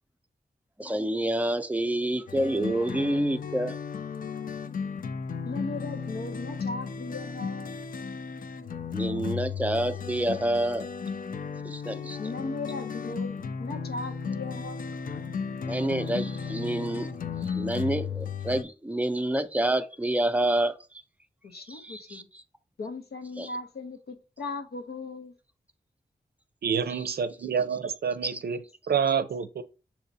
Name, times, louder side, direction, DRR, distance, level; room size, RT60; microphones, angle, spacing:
voice 1, 0.8-3.8 8.9-10.9 11.6-12.2 15.7-17.1 17.4-21.0 21.7-22.4 23.4-23.5 28.2-28.4, right 1 dB, 10° right, 0.5 m, -28 dB
sound 1, 2.3-18.6, left 6 dB, 60° left, 0.4 m, -34 dB
voice 2, 5.4-7.8 12.2-14.9 21.4-22.3 22.8-25.3, left 3 dB, 90° left, 0.8 m, -37 dB
voice 3, 26.6-28.6 28.9-29.6, right 7 dB, 85° right, 0.5 m, -28 dB
6.9 x 2.8 x 2.7 m
wide cardioid pair, 70°, 16 cm